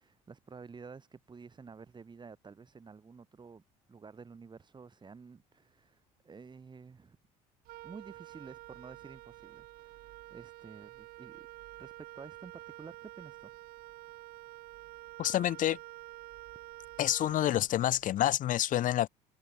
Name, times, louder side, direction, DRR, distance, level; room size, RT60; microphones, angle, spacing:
voice 1, 0.0-3.6 3.9-7.2 7.8-11.5 11.8-13.5, right 5 dB, 25° right, 5.5 m, -51 dB
Wind instrument woodwind instrument, 7.6-18.1, right 18 dB, 65° right, 1.8 m, -49 dB
voice 2, 15.2-15.8 17.0-19.1, left 13 dB, 55° left, 1.3 m, -28 dB
supercardioid pair, 80°, 16 cm